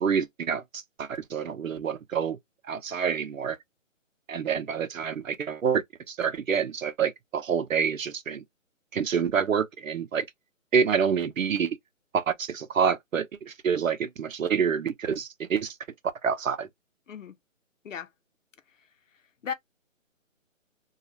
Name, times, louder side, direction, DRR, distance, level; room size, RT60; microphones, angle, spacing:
voice 1, 0.0-2.4 2.7-3.6 4.3-8.4 8.9-10.3 10.7-11.8 12.1-15.7 16.2-16.7, right 7 dB, 80° right, 0.7 m, -27 dB
voice 2, 17.1-17.3 17.8-18.1 19.4-19.5, left 7 dB, 70° left, 0.7 m, -35 dB
2.4 x 2.4 x 2.9 m
hypercardioid pair, 165°, 40 cm